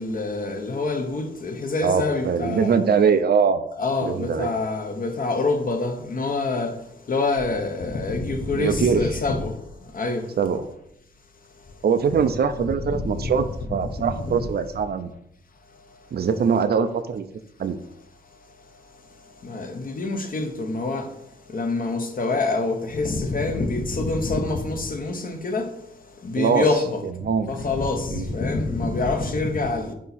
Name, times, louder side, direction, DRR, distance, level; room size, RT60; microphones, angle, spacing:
voice 1, 0.0-2.8 3.8-6.7 7.1-9.5 9.9-10.2 13.2-13.3 19.4-21.0 21.5-25.7 26.2-27.0 27.5-29.9, left 3 dB, 50° left, 0.9 m, -26 dB
voice 2, 1.8-3.6 4.0-4.5 8.5-9.0 10.4-10.7 11.8-15.1 16.1-17.2 17.6-17.8 26.4-26.7 27.2-27.5 28.1-28.3, right 6 dB, 60° right, 0.5 m, -22 dB
8.4 x 2.8 x 4.2 m
wide cardioid pair, 115°, 19 cm